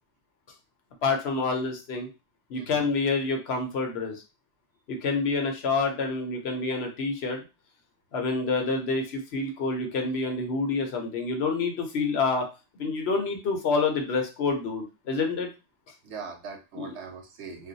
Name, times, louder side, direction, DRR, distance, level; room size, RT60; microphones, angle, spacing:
voice 1, 1.0-2.1 2.5-4.2 4.9-7.4 8.1-12.5 12.8-15.5 16.7-17.0, left 4 dB, 65° left, 3 dB, 0.9 m, -27 dB
voice 2, 2.5-2.9 16.0-17.7, right 5 dB, 75° right, 2 dB, 1.0 m, -41 dB
2.4 x 2.1 x 3.9 m, 0.28 s
omnidirectional pair, 1.2 m